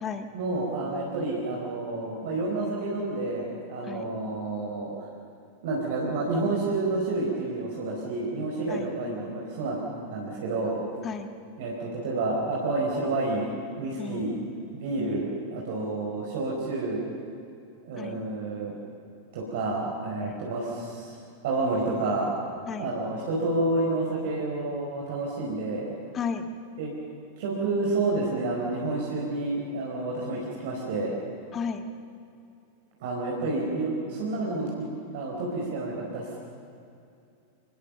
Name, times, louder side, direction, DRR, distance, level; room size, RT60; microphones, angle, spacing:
voice 1, 0.3-4.9 5.6-10.8 11.6-13.5 13.8-14.3 14.7-17.0 17.8-18.7 19.3-21.1 21.4-22.3 22.8-25.9 26.8-26.9 27.4-31.2 33.0-34.8 35.1-36.4, right 2 dB, 55° right, -3 dB, 4.8 m, -29 dB
voice 2, 14.0-14.3 15.0-15.2 18.0-18.2 20.2-20.4 22.7-22.9 26.1-26.5 31.5-31.8, left 6 dB, 25° left, 8 dB, 1.7 m, -34 dB
27.0 x 20.0 x 7.0 m, 2.6 s
figure-of-eight pair, 90°, 0 cm